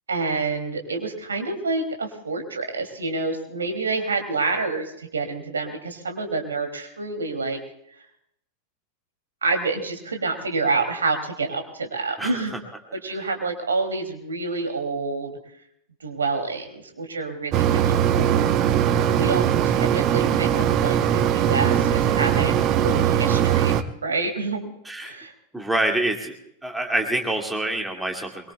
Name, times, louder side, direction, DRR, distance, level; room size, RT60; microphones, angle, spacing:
voice 1, 0.1-7.6 9.4-12.6 13.0-15.4 16.0-18.4 19.0-23.8 24.0-24.7 25.0-25.3, right 3 dB, 70° right, 5 dB, 2.7 m, -28 dB
Mechanisms, 17.5-23.8, right 9 dB, 35° right, 0.9 m, -20 dB
voice 2, 24.9-25.2 25.5-26.3 26.6-28.5, right 1 dB, 5° right, 2 dB, 2.2 m, -26 dB
24.0 x 22.5 x 2.3 m, 0.73 s
figure-of-eight pair, 90°, 0 cm